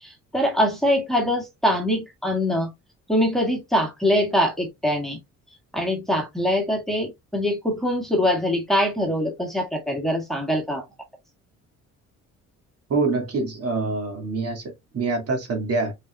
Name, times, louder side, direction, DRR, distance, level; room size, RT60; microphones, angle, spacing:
voice 1, 0.0-2.7 3.1-5.2 5.7-10.8, equal, ahead, 1.8 m, -23 dB
voice 2, 12.9-15.9, right 3 dB, 50° right, 2.1 m, -25 dB
5.2 x 4.3 x 2.3 m
cardioid pair, 90°, 30 cm